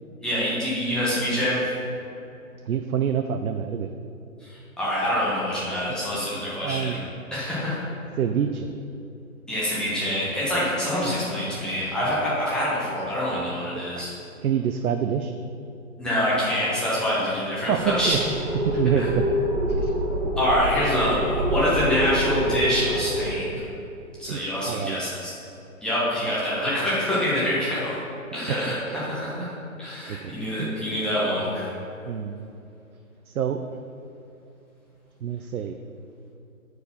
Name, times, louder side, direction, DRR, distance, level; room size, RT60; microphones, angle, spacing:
voice 1, 0.2-1.7 4.4-7.0 7.3-7.8 9.5-14.1 16.0-18.2 19.0-19.1 20.4-23.7 24.2-25.3 25.8-28.0 28.3-29.5 29.8-31.7, equal, ahead, -9 dB, 1.0 m, -26 dB
voice 2, 2.6-3.9 5.9-6.0 6.6-7.0 8.2-8.8 13.8-14.1 14.4-15.3 17.7-18.2 18.6-19.2 19.7-19.9 24.3-25.0 28.9-29.0 29.4-29.6 30.1-30.8 32.0-32.5 33.3-33.6 35.2-35.8, right 8 dB, 85° right, 7 dB, 0.5 m, -27 dB
sound 1, 17.8-23.3, equal, 45° right, 1.8 m, -26 dB
6.7 x 4.8 x 5.4 m, 2.7 s
hypercardioid pair, 145°, 42 cm